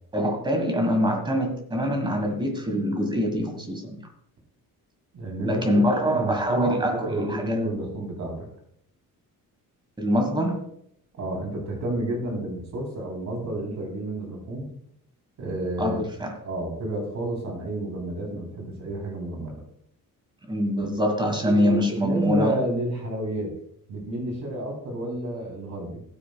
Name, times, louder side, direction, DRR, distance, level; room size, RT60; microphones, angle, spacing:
voice 1, 0.1-4.0 5.4-7.6 10.0-10.7 15.8-16.3 20.5-22.6, equal, 15° right, 5 dB, 1.7 m, -24 dB
voice 2, 5.1-8.5 11.2-14.7 15.4-16.1 16.4-19.5 21.3-23.5 23.9-26.0, right 1 dB, 55° right, 1 dB, 3.7 m, -31 dB
15.5 x 9.2 x 2.3 m, 0.70 s
cardioid pair, 180°, 34 cm